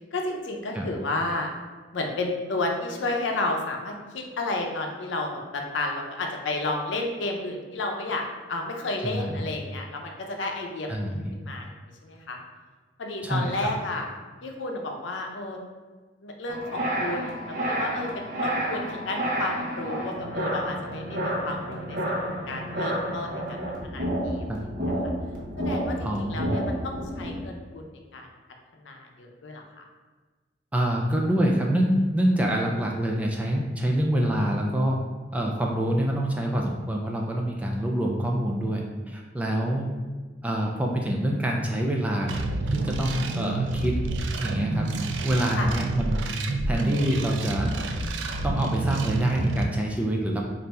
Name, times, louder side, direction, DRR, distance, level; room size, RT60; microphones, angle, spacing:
voice 1, 0.1-1.5 1.9-8.2 8.5-11.0 11.3-11.7 12.0-12.4 13.0-14.1 14.4-15.6 16.2-22.2 22.5-24.5 25.6-28.3 28.8-29.8 39.4-39.8 45.6-45.7, left 2 dB, 85° left, 2 dB, 0.6 m, -32 dB
voice 2, 9.0-9.4 10.9-11.3 13.2-13.5 24.5-24.6 26.0-26.6 30.7-35.0 35.3-39.9 40.4-42.4 42.7-44.0 44.4-46.4 46.7-47.7 48.4-50.4, right 1 dB, 10° right, -1 dB, 0.3 m, -26 dB
sound 1, 16.5-27.4, equal, 45° right, 0.7 m, -30 dB
sound 2, 42.3-49.7, right 2 dB, 85° right, 0.4 m, -28 dB
3.4 x 2.5 x 4.1 m, 1.3 s
head